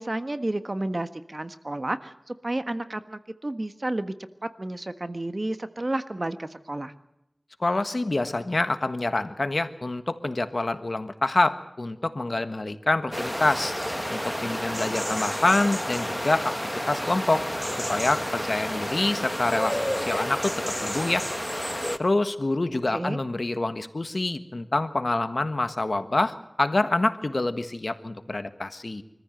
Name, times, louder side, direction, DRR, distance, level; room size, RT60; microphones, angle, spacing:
voice 1, 0.0-4.1 4.6-6.9 22.9-23.2, right 1 dB, 50° right, 10 dB, 1.4 m, -31 dB
voice 2, 7.6-13.7 14.1-16.5 16.9-17.4 17.9-20.5 20.8-21.2 22.0-29.0, left 2 dB, 65° left, 10 dB, 1.5 m, -26 dB
sound 1, 13.1-22.0, equal, 5° left, 1.3 m, -30 dB
25.0 x 14.5 x 7.9 m, 0.87 s
wide cardioid pair, 40°, 0 cm